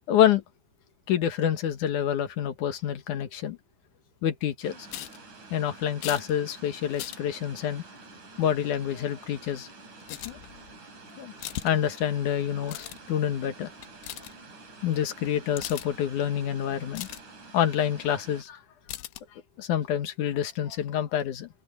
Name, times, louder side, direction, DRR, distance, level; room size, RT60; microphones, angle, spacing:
voice 1, 0.1-0.4 1.1-3.6 4.2-4.8 5.5-7.8 8.4-9.7 10.2-10.4 11.2-11.3 11.6-13.7 14.8-17.1 17.5-18.6 19.6-21.5, left 10 dB, 60° left, 2.3 m, -27 dB
sound 1, 4.6-18.4, right 3 dB, 45° right, 6.0 m, -48 dB
sound 2, 4.9-5.2 6.0-6.3 6.9-7.2 10.0-10.8 11.4-11.8 12.1-12.3 12.7-13.0 13.8-14.3 15.3-15.4 15.6-15.9 16.5-16.6 16.9-17.2 18.5-18.6 18.9-19.2, left 15 dB, 80° left, 3.0 m, -38 dB
omnidirectional pair, 5.0 m